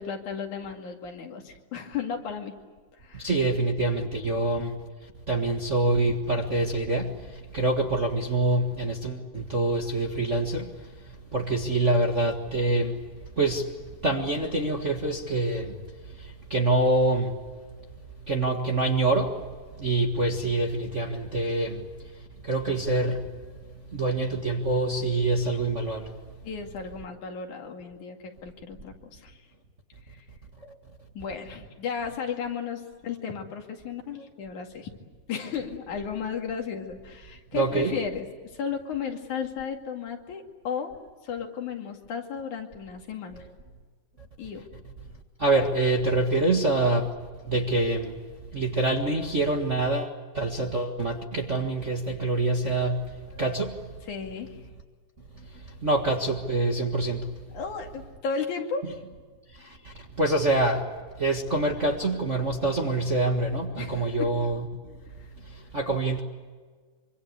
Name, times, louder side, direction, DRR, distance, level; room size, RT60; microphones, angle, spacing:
voice 1, 0.0-2.5 3.0-3.3 4.3-4.4 26.4-29.4 30.1-30.2 31.2-34.9 35.3-38.3 38.5-43.5 44.4-44.7 54.1-54.6 57.5-58.9 63.8-64.3 65.2-65.3, left 6 dB, 70° left, 3 dB, 3.8 m, -34 dB
voice 2, 3.1-4.8 5.3-10.8 11.3-13.0 13.4-13.7 14.0-15.8 16.2-17.4 18.3-19.4 19.8-21.9 22.4-23.2 23.9-26.1 30.6-30.7 37.5-38.0 45.4-47.1 47.4-48.2 48.5-53.8 55.7-57.3 59.6-60.8 61.2-64.9 65.4-66.2, right 2 dB, 30° right, 1 dB, 1.4 m, -26 dB
25.5 x 25.5 x 8.1 m, 1.5 s
omnidirectional pair, 3.5 m